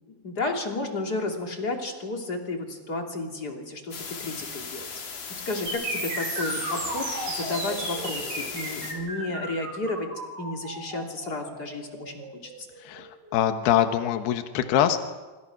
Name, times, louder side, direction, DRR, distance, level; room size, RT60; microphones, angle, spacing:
voice 1, 0.2-4.9 5.4-10.1 10.4-12.7, left 2 dB, 25° left, 2 dB, 2.7 m, -32 dB
sound 1, 3.9-8.9, left 5 dB, 55° left, 4.5 m, -37 dB
sound 2, 5.7-13.6, right 2 dB, 65° right, 8.7 m, -34 dB
voice 2, 12.8-15.0, left 10 dB, 75° left, 8 dB, 3.2 m, -24 dB
26.5 x 26.5 x 6.1 m, 1.2 s
omnidirectional pair, 4.9 m